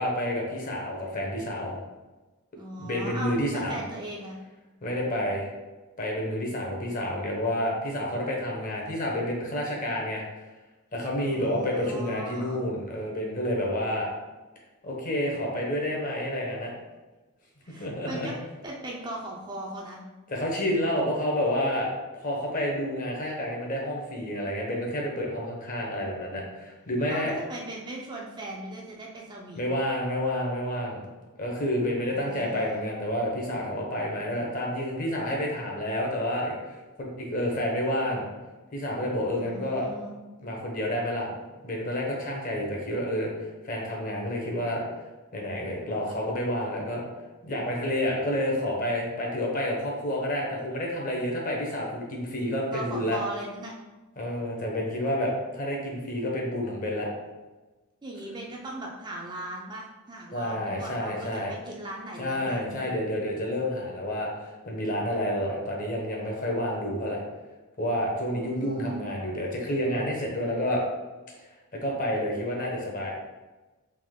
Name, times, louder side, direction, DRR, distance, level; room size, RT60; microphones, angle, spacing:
voice 1, 0.0-1.8 2.8-3.8 4.8-5.5 6.0-10.2 10.9-14.1 14.8-16.7 17.8-18.3 20.3-21.9 22.1-27.4 29.5-31.0 31.4-38.3 38.7-39.9 40.4-41.3 41.6-44.9 45.3-47.1 47.4-53.2 54.2-57.1 60.3-61.5 62.2-67.2 67.8-70.8 71.7-73.1, left 1 dB, 35° left, -1 dB, 0.8 m, -29 dB
voice 2, 2.6-4.4 11.2-12.6 17.6-18.3 18.6-20.0 27.1-29.7 32.1-33.0 39.4-40.2 52.7-53.7 58.0-62.8 68.3-69.1, right 1 dB, 20° right, -2 dB, 0.4 m, -39 dB
3.5 x 3.0 x 3.6 m, 1.2 s
head